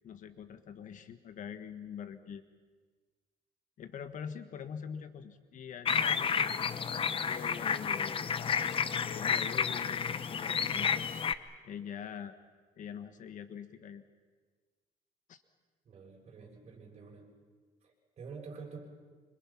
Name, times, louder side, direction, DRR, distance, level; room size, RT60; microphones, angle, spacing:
voice 1, 0.0-2.4 3.8-6.5 7.3-11.0 11.6-12.4 12.8-14.0 15.3-15.4, left 7 dB, 55° left, 10 dB, 1.4 m, -44 dB
sound 1, 5.9-11.3, left 7 dB, 35° left, 0.8 m, -31 dB
voice 2, 15.9-17.2 17.8-18.8, right 5 dB, 40° right, -1 dB, 6.9 m, -48 dB
26.5 x 26.0 x 5.9 m, 1.5 s
cardioid pair, 125°, 16 cm